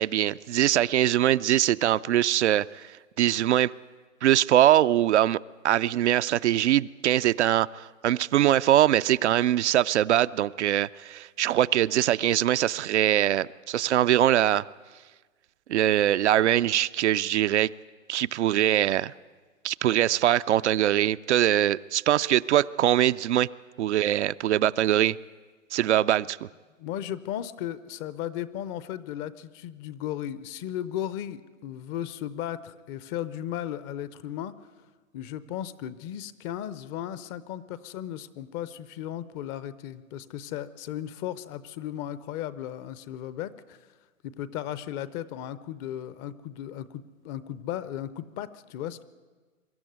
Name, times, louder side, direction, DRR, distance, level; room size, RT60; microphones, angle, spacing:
voice 1, 0.0-2.9 3.2-3.7 4.2-5.4 5.6-14.6 15.7-17.7 18.1-19.1 19.6-23.5 23.8-25.2 25.7-26.4, right 12 dB, 60° right, 0.5 m, -22 dB
voice 2, 26.8-34.5 35.1-43.8 44.2-49.0, left 11 dB, 25° left, 0.6 m, -35 dB
23.5 x 13.0 x 9.4 m
hypercardioid pair, 125°, 39 cm